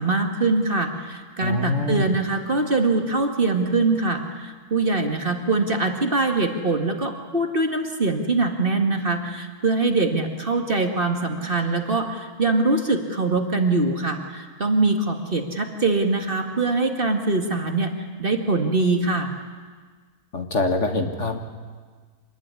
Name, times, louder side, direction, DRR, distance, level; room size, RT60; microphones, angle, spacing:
voice 1, 0.0-17.9 18.2-19.3, right 3 dB, 35° right, 4 dB, 2.1 m, -23 dB
voice 2, 1.4-2.1 20.3-21.4, left 2 dB, 50° left, 5 dB, 2.0 m, -24 dB
26.0 x 20.0 x 9.9 m, 1.5 s
omnidirectional pair, 1.7 m